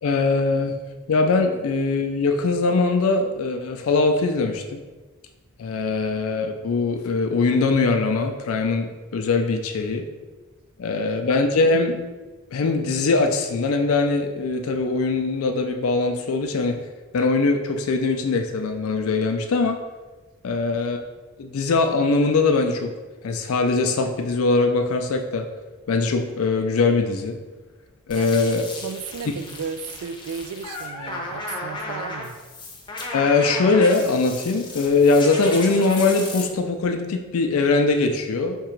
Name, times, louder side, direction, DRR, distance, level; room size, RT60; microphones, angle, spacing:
voice 1, 0.0-0.8 1.1-4.8 5.6-10.0 10.8-12.0 12.5-16.8 17.1-19.8 20.4-21.0 21.4-22.9 23.2-25.5 25.9-27.4 28.1-28.6 33.1-38.7, left 3 dB, 70° left, 5 dB, 0.4 m, -21 dB
voice 2, 10.9-11.3 20.5-20.6 28.1-28.3 28.8-32.4, right 6 dB, 85° right, 11 dB, 0.3 m, -35 dB
sound 1, 28.1-36.4, left 2 dB, 20° left, 0.6 m, -34 dB
3.6 x 2.9 x 4.4 m, 1.2 s
head